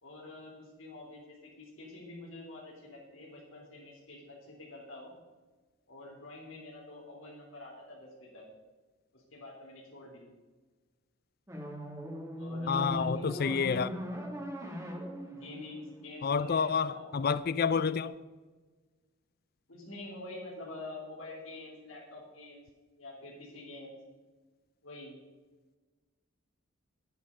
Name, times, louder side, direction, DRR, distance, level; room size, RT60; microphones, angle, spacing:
voice 1, 0.0-5.1 5.9-8.4 9.1-10.2 12.4-13.5 15.3-17.5 19.7-22.6 23.0-23.9 24.8-25.1, left 2 dB, 75° left, 3.5 m, -47 dB
sound 1, 11.5-16.6, equal, 15° right, 2.5 m, -39 dB
voice 2, 12.7-13.9 16.2-18.1, left 6 dB, 50° left, 0.4 m, -29 dB
11.5 x 9.9 x 5.3 m
head